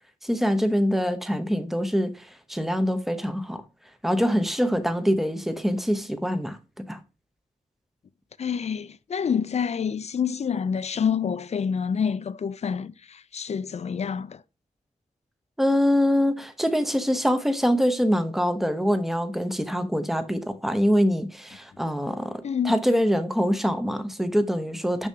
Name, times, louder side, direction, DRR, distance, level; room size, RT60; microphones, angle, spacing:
voice 1, 0.2-3.6 4.0-6.6 6.9-7.0 15.6-25.1, equal, ahead, 0.7 m, -24 dB
voice 2, 8.4-14.4 22.4-22.8, left 7 dB, 55° left, 0.4 m, -27 dB
6.8 x 6.2 x 2.7 m
wide cardioid pair, 150°, 14 cm